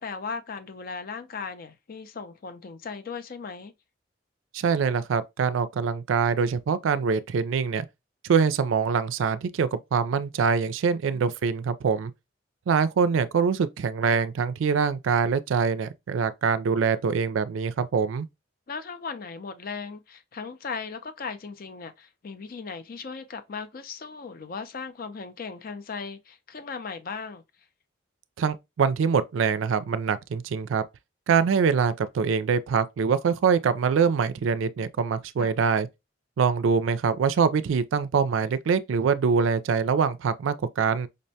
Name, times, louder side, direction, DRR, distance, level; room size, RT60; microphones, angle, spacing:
voice 1, 0.0-3.7 11.1-11.2 18.7-27.4 35.4-35.6, left 5 dB, 50° left, 0.5 m, -37 dB
voice 2, 4.5-7.9 8.2-12.1 12.7-18.3 28.4-30.8 31.3-35.9 36.4-41.1, right 6 dB, 80° right, 0.4 m, -24 dB
5.2 x 2.1 x 2.7 m
head